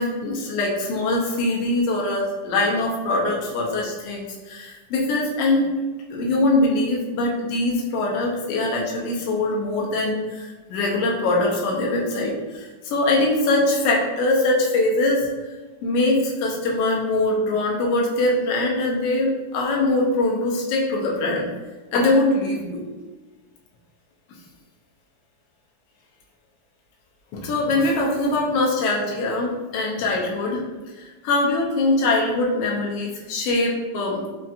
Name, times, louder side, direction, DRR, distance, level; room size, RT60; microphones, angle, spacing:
voice 1, 0.0-5.7 6.1-15.3 15.8-21.5 21.9-22.8 27.3-30.6 31.0-34.3, left 2 dB, 75° left, -3 dB, 1.4 m, -22 dB
5.1 x 2.4 x 2.7 m, 1.3 s
omnidirectional pair, 3.6 m